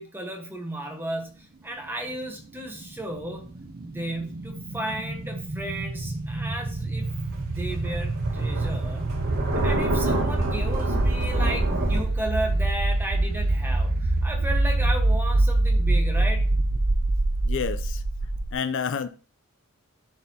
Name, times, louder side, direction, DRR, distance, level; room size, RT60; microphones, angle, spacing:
voice 1, 0.0-3.5 3.8-7.1 7.5-9.1 9.6-16.6, right 1 dB, 10° right, 1.2 m, -34 dB
sound 1, 2.6-18.5, right 2 dB, 45° right, 0.6 m, -25 dB
Thunder, 7.0-12.0, right 1 dB, 70° right, 2.1 m, -28 dB
voice 2, 17.4-18.0 18.5-19.1, left 6 dB, 60° left, 0.4 m, -29 dB
10.5 x 4.2 x 2.8 m
head